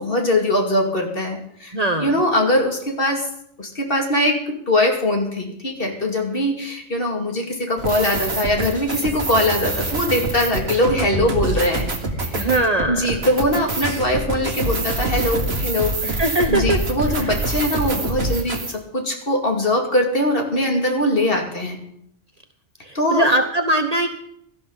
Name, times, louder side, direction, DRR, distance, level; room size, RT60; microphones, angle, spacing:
voice 1, 0.0-3.3 3.6-11.9 12.1-12.3 12.9-16.2 16.5-21.8 22.9-23.3, left 1 dB, 50° left, 1 dB, 2.6 m, -21 dB
voice 2, 1.7-2.1 12.3-13.1 16.0-16.8 17.1-17.4 22.8-24.1, right 2 dB, 35° right, 5 dB, 1.0 m, -21 dB
sound 1, 7.8-18.7, right 2 dB, 55° right, 2.0 m, -25 dB
17.5 x 13.0 x 4.0 m, 0.73 s
omnidirectional pair, 1.2 m